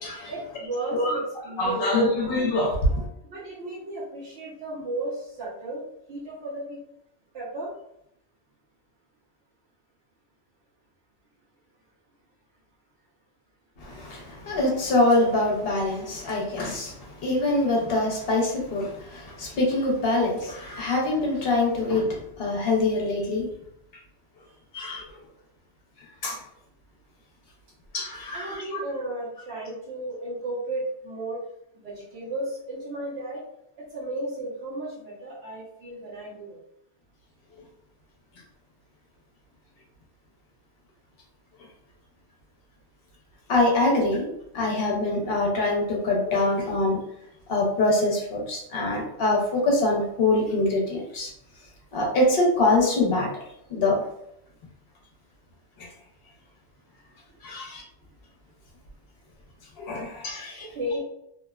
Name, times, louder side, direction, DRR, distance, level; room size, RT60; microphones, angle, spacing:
voice 1, 0.3-2.2 3.3-5.8 6.1-6.8 7.3-7.7 28.3-31.4 31.7-33.4 33.8-36.6 60.6-61.0, right 1 dB, 65° right, -7 dB, 1.0 m, -34 dB
voice 2, 1.6-3.0 14.1-14.2 14.5-16.9 17.2-18.9 19.4-22.1 22.4-23.5 24.7-25.0 26.2-26.3 27.9-28.6 43.5-44.3 44.5-47.0 47.5-51.3 51.9-53.3 53.7-54.0 57.4-57.8 59.8-60.6, left 2 dB, 60° left, -2 dB, 0.9 m, -24 dB
2.8 x 2.1 x 2.3 m, 0.77 s
omnidirectional pair, 1.2 m